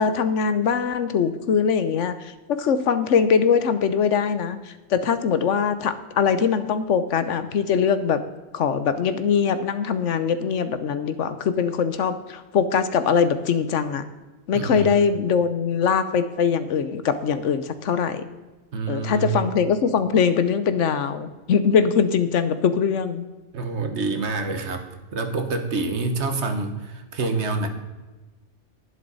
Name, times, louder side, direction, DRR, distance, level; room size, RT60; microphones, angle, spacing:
voice 1, 0.0-8.2 8.5-14.0 14.5-18.3 18.9-23.3, left 6 dB, 70° left, 12 dB, 1.1 m, -22 dB
voice 2, 14.5-14.9 18.7-19.5 23.5-24.8 25.1-27.7, right 3 dB, 60° right, 7 dB, 1.4 m, -27 dB
11.0 x 11.0 x 4.0 m, 1.2 s
omnidirectional pair, 1.3 m